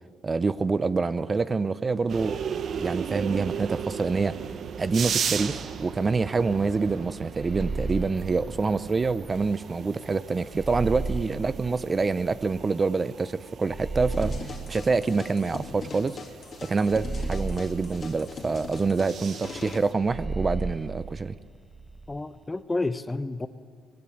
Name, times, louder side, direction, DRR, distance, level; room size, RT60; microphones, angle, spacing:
voice 1, 0.2-2.4 2.7-4.3 4.8-14.3 14.7-16.2 16.6-21.4, right 4 dB, 35° right, 15 dB, 0.6 m, -26 dB
sound 1, 2.1-19.9, right 7 dB, 60° right, 0.9 m, -37 dB
sound 2, 7.4-9.5 10.5-12.7 13.7-16.0 16.9-19.0 20.0-22.2, right 3 dB, 10° right, 1.1 m, -35 dB
sound 3, 14.1-19.8, left 4 dB, 50° left, 2.5 m, -41 dB
voice 2, 22.1-23.5, left 2 dB, 20° left, 14 dB, 0.9 m, -30 dB
20.0 x 16.0 x 9.8 m, 2.1 s
supercardioid pair, 65°, 0 cm